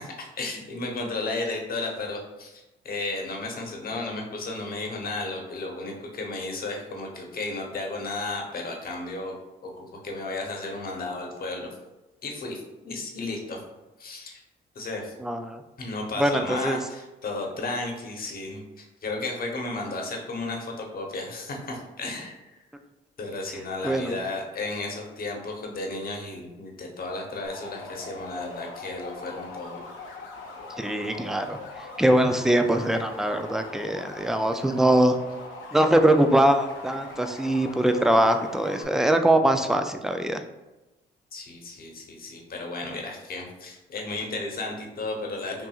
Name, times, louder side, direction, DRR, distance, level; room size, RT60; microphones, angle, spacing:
voice 1, 0.0-9.4 9.6-11.7 12.2-13.6 14.0-14.4 14.7-15.1 15.8-22.4 23.2-29.8 41.3-45.7, left 2 dB, 50° left, 1 dB, 0.9 m, -33 dB
voice 2, 15.2-15.6 16.2-16.8 23.8-24.2 30.8-31.6 32.0-35.2 35.7-40.4, right 1 dB, ahead, 7 dB, 0.3 m, -22 dB
sound 1, 27.4-38.8, left 3 dB, 80° left, 0.7 m, -41 dB
5.6 x 2.5 x 2.4 m, 1.0 s
cardioid pair, 90°, 20 cm